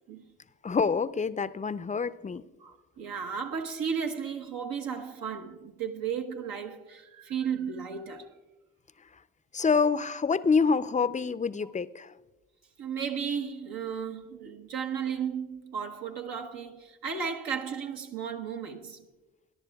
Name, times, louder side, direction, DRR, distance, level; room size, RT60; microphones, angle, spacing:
voice 1, 0.6-2.4 9.5-12.1, left 5 dB, 20° left, 0.5 m, -26 dB
voice 2, 2.6-8.3 11.6-11.7 12.8-19.1, right 7 dB, 70° right, 1.1 m, -34 dB
21.0 x 10.5 x 2.3 m
supercardioid pair, 50°, 36 cm